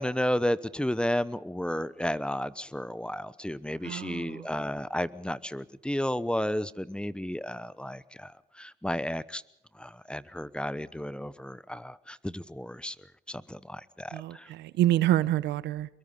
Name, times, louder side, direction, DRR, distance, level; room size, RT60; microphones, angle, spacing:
voice 1, 0.0-8.3 8.6-9.4 9.8-12.9 13.3-14.5, equal, 5° left, 1.0 m, -32 dB
voice 2, 3.8-4.5 14.1-15.9, right 13 dB, 90° right, 0.9 m, -27 dB
24.0 x 22.5 x 5.6 m
cardioid pair, 75°, 17 cm